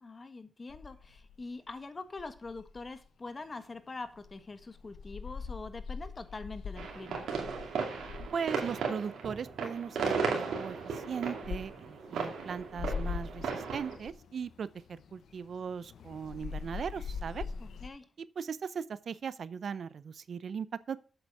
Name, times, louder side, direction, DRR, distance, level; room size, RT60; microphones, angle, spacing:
voice 1, 0.0-7.3 17.6-18.0, left 3 dB, 45° left, 1.5 m, -44 dB
sound 1, 0.7-1.7 2.2-3.3 3.6-9.3 9.5-9.6 9.8-17.9, left 5 dB, 85° left, 0.9 m, -43 dB
sound 2, 6.8-14.0, right 5 dB, 85° right, 2.4 m, -36 dB
voice 2, 8.3-10.8 11.1-14.7 15.1-17.4 18.2-21.0, right 6 dB, 70° right, 0.6 m, -38 dB
7.8 x 7.7 x 4.8 m
supercardioid pair, 50°, 0 cm